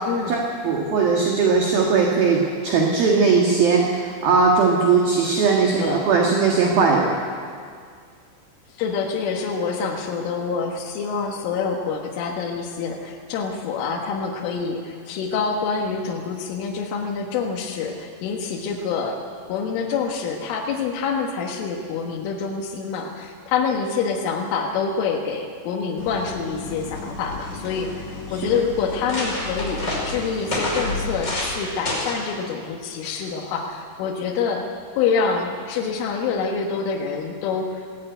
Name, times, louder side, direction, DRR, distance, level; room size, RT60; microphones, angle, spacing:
voice 1, 0.1-0.4 5.6-6.1 8.7-19.2 19.5-34.7 34.9-37.9, left 5 dB, 80° left, 0 dB, 4.1 m, -26 dB
voice 2, 0.6-7.2, right 5 dB, 55° right, 0 dB, 3.3 m, -19 dB
Idling, 26.0-32.0, left 2 dB, 40° left, 4.6 m, -35 dB
sound 1, 27.4-27.9 28.5-28.6 28.9-31.6 31.9-32.3 33.0-33.3, left 1 dB, 20° left, 5.7 m, -29 dB
21.0 x 18.0 x 9.1 m, 2.1 s
omnidirectional pair, 5.6 m